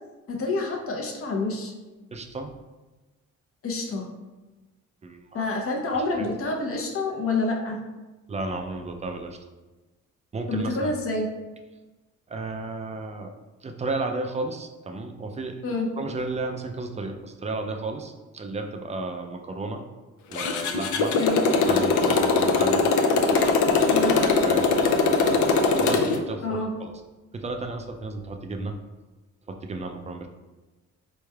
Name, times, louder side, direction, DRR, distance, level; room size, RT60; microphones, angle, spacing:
voice 1, 0.3-1.7 3.6-4.1 5.3-7.8 10.5-11.3 15.6-15.9 21.2-21.4 23.9-24.2 26.4-26.7, left 3 dB, 45° left, 1 dB, 0.8 m, -27 dB
voice 2, 2.1-2.5 5.0-5.5 6.2-6.3 8.3-9.4 10.3-10.9 12.3-13.3 13.6-19.8 20.3-21.2 21.7-22.9 23.3-23.6 23.9-25.4 25.8-26.9 27.3-28.7 29.5-30.3, right 2 dB, 25° right, 4 dB, 0.4 m, -33 dB
Motorcycle, 20.3-26.2, left 4 dB, 75° left, 0.5 m, -21 dB
4.3 x 3.2 x 2.3 m, 1.2 s
cardioid pair, 90°, 30 cm